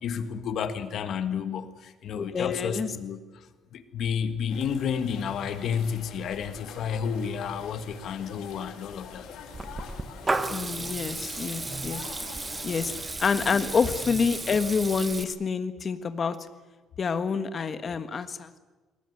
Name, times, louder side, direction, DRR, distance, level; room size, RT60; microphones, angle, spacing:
voice 1, 0.0-3.5 3.7-9.3 11.3-11.4 13.3-13.6, left 7 dB, 55° left, 10 dB, 1.7 m, -31 dB
voice 2, 2.1-2.9 10.5-12.1 12.6-12.9 13.2-16.4 17.0-18.6, left 5 dB, 35° left, 10 dB, 1.6 m, -27 dB
sound 1, 4.5-13.0, left 6 dB, 85° left, 6.0 m, -45 dB
Water tap faucet / Liquid, 9.5-15.2, right 3 dB, 15° right, 1.4 m, -33 dB
22.0 x 18.5 x 8.1 m, 1.3 s
cardioid pair, 140°, 0 cm